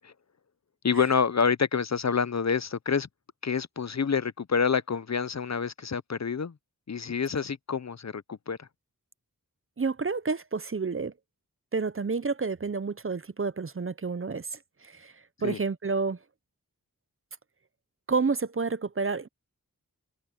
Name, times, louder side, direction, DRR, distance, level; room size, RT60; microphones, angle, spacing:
voice 1, 0.8-3.1 3.4-6.5 6.9-8.7 15.4-15.6, left 6 dB, 50° left, 0.6 m, -27 dB
voice 2, 9.8-11.1 11.7-15.1 15.4-16.2 18.1-19.3, right 4 dB, 40° right, 0.6 m, -29 dB
wide cardioid pair, 55°, 35 cm